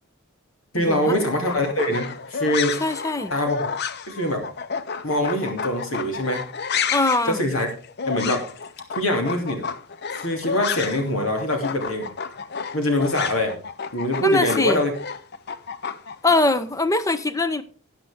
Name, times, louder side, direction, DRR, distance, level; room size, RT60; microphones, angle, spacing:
voice 1, 0.7-2.8 3.3-3.7 4.1-4.4 5.0-6.4 7.2-7.7 8.0-8.4 8.9-9.7 10.1-12.1 12.7-13.6 13.9-14.9, left 1 dB, 70° left, 2.9 m, -23 dB
sound 1, 1.3-11.1 11.4-16.4, left 6 dB, 50° left, 0.6 m, -31 dB
voice 2, 2.8-3.3 6.9-7.4 14.2-14.8 16.2-17.6, left 2 dB, 15° left, 0.7 m, -22 dB
13.5 x 8.9 x 3.6 m
head